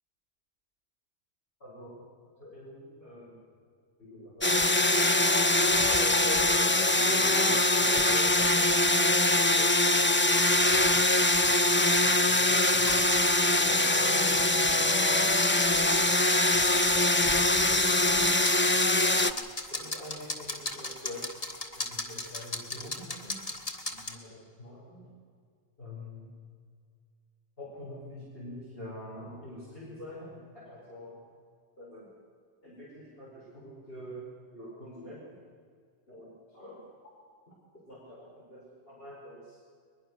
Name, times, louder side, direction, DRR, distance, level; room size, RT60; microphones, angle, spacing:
voice 1, 1.6-2.0 2.4-3.4 4.0-4.6 5.0-9.8 11.2-13.1 13.6-16.9 19.1-21.4 21.7-23.4 23.9-25.1 25.8-26.3 27.6-31.2 31.8-32.2 32.6-35.2 36.1-36.9 37.5-39.6, left 1 dB, 60° left, -6 dB, 5.3 m, -45 dB
sound 1, 4.4-19.3, left 2 dB, 15° left, 0.5 m, -23 dB
sound 2, 12.8-24.2, left 2 dB, 35° left, 1.9 m, -39 dB
22.0 x 21.0 x 6.2 m, 2.1 s
omnidirectional pair, 1.1 m